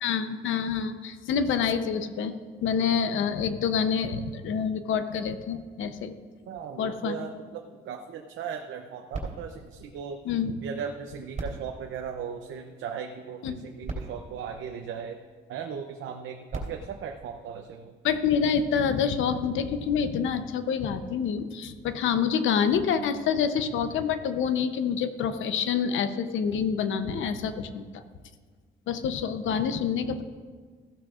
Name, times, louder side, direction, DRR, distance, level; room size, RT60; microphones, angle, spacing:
voice 1, 0.0-6.2 6.8-7.2 10.2-10.5 13.4-13.6 18.0-28.0 28.9-30.2, left 7 dB, 80° left, 10 dB, 0.8 m, -27 dB
voice 2, 6.5-10.2 10.6-15.2 15.5-17.9, right 7 dB, 75° right, 4 dB, 0.7 m, -37 dB
sound 1, 9.1-10.8 11.3-12.9 13.6-13.7 13.8-15.4 16.2-18.1 18.8-18.9, right 3 dB, 35° right, 3.4 m, -41 dB
15.0 x 12.0 x 2.5 m, 1.5 s
cardioid pair, 90°, 20 cm